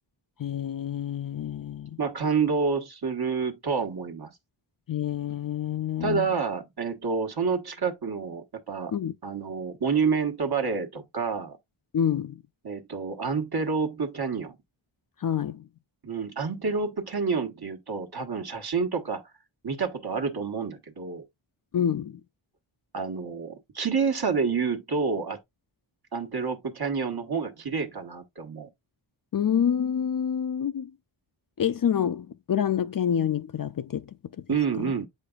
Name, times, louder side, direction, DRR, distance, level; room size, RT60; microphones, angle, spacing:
voice 1, 0.4-2.0 4.9-6.3 8.9-9.1 11.9-12.4 15.2-15.6 21.7-22.2 29.3-30.9 31.6-34.1 34.4-34.5 34.8-34.9, left 8 dB, 45° left, 0.4 m, -27 dB
voice 2, 2.0-4.3 6.0-8.9 9.2-11.6 12.6-14.6 16.0-19.2 19.6-21.2 22.9-25.4 26.1-28.7 34.5-35.1, right 5 dB, 50° right, 1.2 m, -28 dB
7.9 x 5.0 x 2.3 m
cardioid pair, 55°, 49 cm